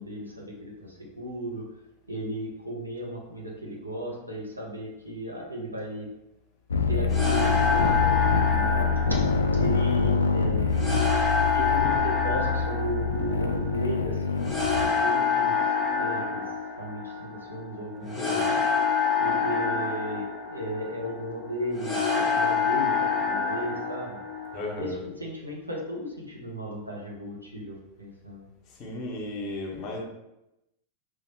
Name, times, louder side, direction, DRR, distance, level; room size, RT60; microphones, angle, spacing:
voice 1, 0.0-1.6 2.1-6.1 6.9-10.8 11.5-15.6 15.9-16.4 16.8-18.7 19.2-24.2 24.8-28.5, right 1 dB, 85° right, -2 dB, 1.0 m, -35 dB
sound 1, 6.7-14.9, left 4 dB, 70° left, 0.3 m, -25 dB
sound 2, 7.1-24.8, left 5 dB, 10° left, 0.9 m, -27 dB
voice 2, 18.0-18.5 24.5-25.0 28.8-30.0, left 2 dB, 35° left, 0 dB, 1.2 m, -34 dB
4.6 x 3.8 x 3.0 m, 0.90 s
figure-of-eight pair, 90°, 0 cm